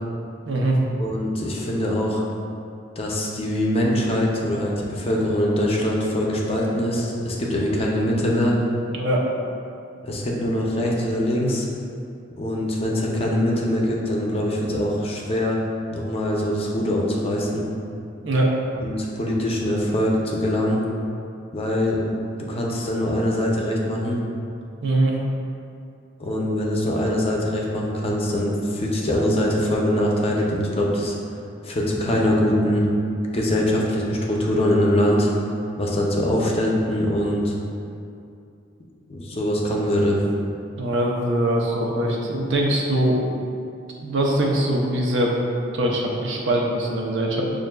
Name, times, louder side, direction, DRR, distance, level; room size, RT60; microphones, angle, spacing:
voice 1, 0.5-0.8 8.9-9.3 18.2-18.5 24.8-25.2 40.8-43.3 44.0-45.4 45.7-47.4, right 1 dB, 70° right, -2 dB, 0.6 m, -22 dB
voice 2, 1.0-2.2 3.0-8.6 10.0-11.7 12.4-15.6 15.9-17.6 18.8-20.8 21.5-22.0 22.5-24.2 26.2-31.1 31.6-32.9 33.3-35.3 35.8-37.6 39.1-40.2, left 1 dB, 30° left, -2 dB, 0.5 m, -23 dB
5.8 x 2.5 x 2.2 m, 2.6 s
head